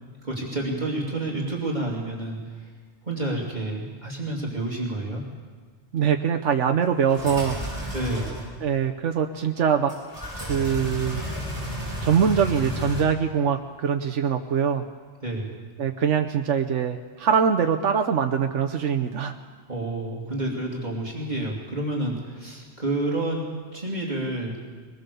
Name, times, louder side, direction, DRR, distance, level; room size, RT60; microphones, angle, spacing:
voice 1, 0.2-2.4 3.0-5.2 7.9-8.3 15.2-15.5 19.7-23.4 23.7-24.5, right 2 dB, 40° right, -2 dB, 3.2 m, -29 dB
voice 2, 5.9-7.9 8.6-9.9 10.4-11.2 12.0-14.8 15.8-19.3, right 7 dB, 90° right, 5 dB, 1.2 m, -23 dB
sound 1, 7.0-8.4 9.9-13.0, equal, 15° right, 7.9 m, -32 dB
22.0 x 21.0 x 7.0 m, 1.5 s
omnidirectional pair, 1.2 m